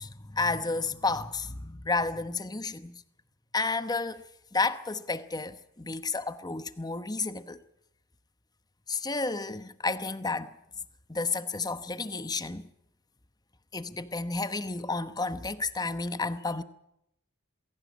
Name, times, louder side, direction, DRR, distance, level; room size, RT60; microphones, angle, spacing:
voice 1, 0.0-3.0 3.5-4.2 4.5-7.6 8.9-10.5 11.1-12.6 13.7-16.6, left 3 dB, 20° left, 1.0 m, -31 dB
20.5 x 17.5 x 8.5 m
head